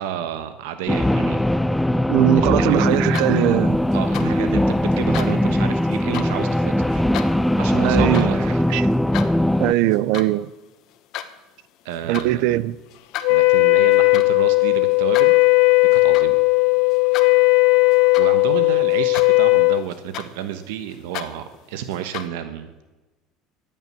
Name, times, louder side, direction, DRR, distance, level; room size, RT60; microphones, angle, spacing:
voice 1, 0.0-1.4 2.4-3.1 3.9-7.0 7.6-8.6 11.8-12.6 13.3-15.3 15.9-16.4 18.2-22.7, right 10 dB, 90° right, 1.1 m, -30 dB
sound 1, 0.9-9.7, left 1 dB, 5° left, 0.4 m, -20 dB
voice 2, 2.1-3.8 4.2-4.3 7.8-8.4 8.7-8.9 9.6-10.5 12.1-12.8, right 15 dB, 75° right, 0.6 m, -20 dB
sound 2, 2.9-3.6 3.9-4.3 4.9-5.3 5.9-6.3 6.9-7.3 7.9-8.3 8.7-9.3 9.8-10.3 10.7-11.3 11.9-12.3 12.9-18.6 18.9-19.6 19.9-22.3, left 12 dB, 60° left, 1.2 m, -35 dB
Wind instrument woodwind instrument, 13.2-19.9, left 28 dB, 80° left, 0.8 m, -16 dB
14.0 x 9.1 x 7.5 m
supercardioid pair, 120°, 0 cm